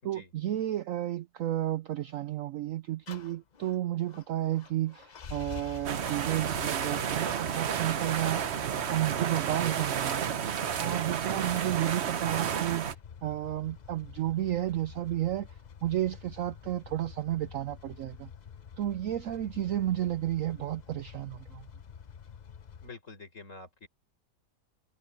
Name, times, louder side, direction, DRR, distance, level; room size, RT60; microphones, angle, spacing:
voice 1, 0.0-8.5 8.9-10.3 10.8-12.9 13.2-18.3 18.8-21.7, right 13 dB, 80° right, 0.7 m, -32 dB
sound 1, 3.1-22.9, left 7 dB, 75° left, 0.4 m, -48 dB
sound 2, 5.9-12.9, right 8 dB, 50° right, 0.8 m, -31 dB
voice 2, 11.3-11.6 22.8-23.9, left 3 dB, 40° left, 4.9 m, -48 dB
omnidirectional pair, 1.9 m